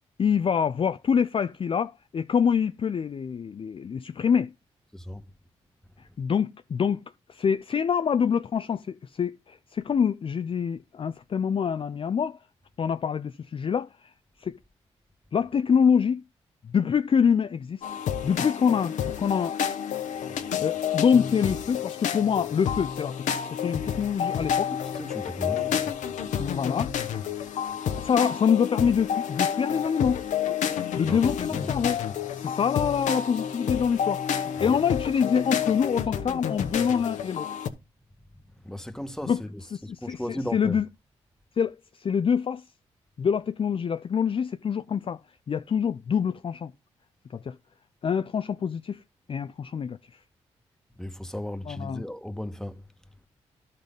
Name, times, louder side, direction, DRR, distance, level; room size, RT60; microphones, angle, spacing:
voice 1, 0.2-4.5 6.0-7.0 7.3-12.4 12.8-13.9 14.4-14.5 15.3-16.2 16.6-17.8 18.2-19.5 20.6-23.1 23.5-24.7 26.4-26.9 28.0-30.2 31.0-32.0 32.4-37.5 39.3-39.4 39.9-40.9 41.6-42.6 43.2-45.2 45.5-46.7 47.3-47.5 48.0-49.0 49.3-50.0 51.7-52.0, left 7 dB, 45° left, 0.5 m, -25 dB
voice 2, 4.9-5.2 24.9-26.0 31.0-31.7 34.6-34.8 38.6-40.8 51.0-52.8, left 1 dB, 5° left, 1.3 m, -36 dB
sound 1, 17.8-37.7, left 8 dB, 80° left, 1.0 m, -30 dB
11.5 x 4.0 x 5.2 m
supercardioid pair, 45°, 13 cm